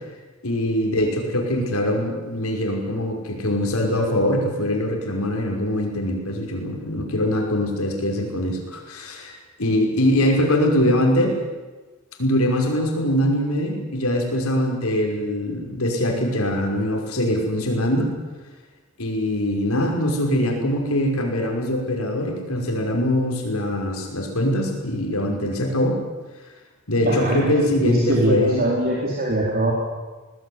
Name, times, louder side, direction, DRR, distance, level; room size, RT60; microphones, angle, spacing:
voice 1, 0.4-11.3 12.2-18.1 19.0-26.0 26.9-28.7, left 1 dB, 85° left, 2 dB, 5.8 m, -22 dB
voice 2, 27.0-29.7, right 1 dB, 45° right, -3 dB, 4.4 m, -22 dB
21.0 x 20.5 x 9.7 m, 1.3 s
head